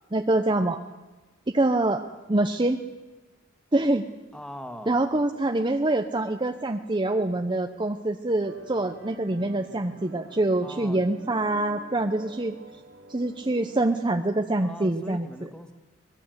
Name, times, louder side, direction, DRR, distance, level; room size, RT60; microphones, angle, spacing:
voice 1, 0.1-0.8 1.5-2.0 2.3-2.8 3.7-4.1 4.9-12.6 13.1-15.3, right 2 dB, 25° right, 6 dB, 0.7 m, -25 dB
voice 2, 4.3-5.0 10.6-11.0 14.6-15.7, equal, 5° left, 5 dB, 1.9 m, -40 dB
sound 1, 8.4-14.0, right 1 dB, 85° right, 2.9 m, -47 dB
24.5 x 20.5 x 8.0 m, 1.2 s
head